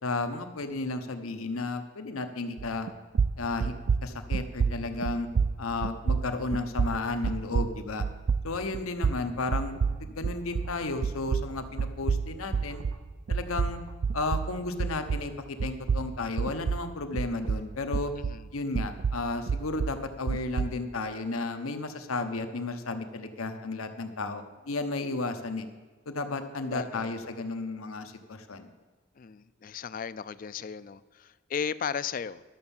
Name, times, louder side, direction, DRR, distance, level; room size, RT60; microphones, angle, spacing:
voice 1, 0.0-2.9 3.4-3.7 4.0-5.3 5.6-8.1 8.4-12.8 13.3-13.8 14.1-18.1 18.5-25.7 26.1-28.7, left 3 dB, 90° left, 8 dB, 1.0 m, -33 dB
sound 1, 2.6-2.9 3.1-10.8 11.0-15.3 15.6-18.5 18.7-20.8, right 5 dB, 55° right, 0.3 m, -29 dB
sound 2, 9.5-14.3, right 3 dB, 90° right, 0.7 m, -49 dB
voice 2, 18.2-18.5 26.6-27.2 29.2-32.4, left 7 dB, 40° left, 16 dB, 0.3 m, -36 dB
12.0 x 7.0 x 7.1 m, 1.4 s
head